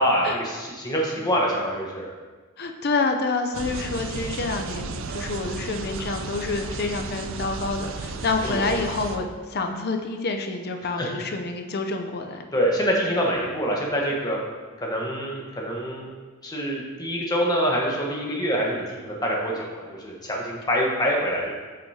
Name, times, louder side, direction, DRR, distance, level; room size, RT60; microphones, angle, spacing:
voice 1, 0.0-2.1 8.4-8.8 11.0-11.1 12.5-14.4 14.8-16.1 16.4-21.5, equal, 20° left, -2 dB, 1.2 m, -25 dB
voice 2, 2.6-12.4, left 3 dB, 45° left, 4 dB, 0.6 m, -28 dB
sound 1, 3.5-9.2, right 4 dB, 60° right, 0.5 m, -34 dB
8.2 x 6.3 x 2.8 m, 1.4 s
head